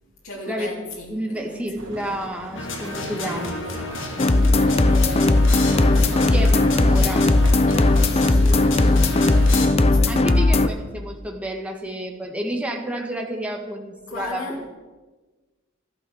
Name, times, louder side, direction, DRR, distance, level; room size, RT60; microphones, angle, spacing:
voice 1, 0.2-2.0 3.2-4.2 4.7-6.7 7.7-10.8 14.1-14.6, left 1 dB, 85° left, -4 dB, 3.7 m, -37 dB
voice 2, 1.1-3.6 6.3-7.3 10.1-14.4, right 1 dB, 5° right, 1 dB, 1.8 m, -30 dB
sound 1, 1.8-9.7, right 1 dB, 65° right, 2.6 m, -38 dB
sound 2, 2.5-9.7, left 3 dB, 65° left, 2.2 m, -32 dB
sound 3, 4.2-10.7, left 2 dB, 30° left, 0.6 m, -17 dB
14.0 x 11.5 x 6.5 m, 1.2 s
head